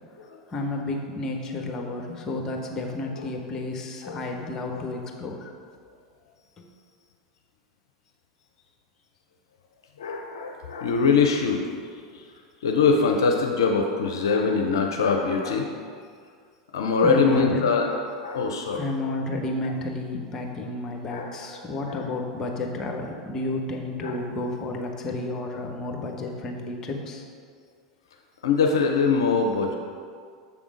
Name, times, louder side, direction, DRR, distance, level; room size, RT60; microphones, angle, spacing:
voice 1, 0.5-5.5 6.6-6.7 17.0-17.7 18.7-27.3, left 2 dB, 30° left, 1 dB, 1.0 m, -31 dB
voice 2, 10.0-12.3 12.6-15.7 16.7-18.9 21.1-21.3 21.8-22.0 24.0-24.2 28.4-29.8, left 5 dB, 75° left, 2 dB, 0.5 m, -23 dB
7.0 x 3.6 x 5.0 m, 2.1 s
hypercardioid pair, 85°, 2 cm